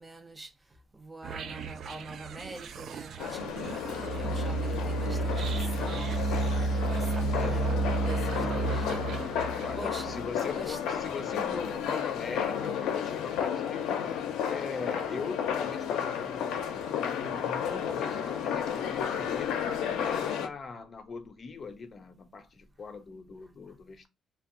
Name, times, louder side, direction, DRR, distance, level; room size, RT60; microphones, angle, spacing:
voice 1, 0.0-3.9 4.2-6.2 6.7-8.9 9.2-9.5 9.8-10.8 11.3-11.7, right 2 dB, 15° right, 0.6 m, -45 dB
sound 1, 1.2-10.5, right 3 dB, 65° right, 0.3 m, -32 dB
sound 2, 3.2-20.5, left 8 dB, 90° left, 0.4 m, -32 dB
voice 2, 7.3-7.8 9.6-14.1 14.5-19.6 20.0-24.1, left 5 dB, 40° left, 0.6 m, -40 dB
2.4 x 2.2 x 3.4 m
cardioid pair, 90°, 0 cm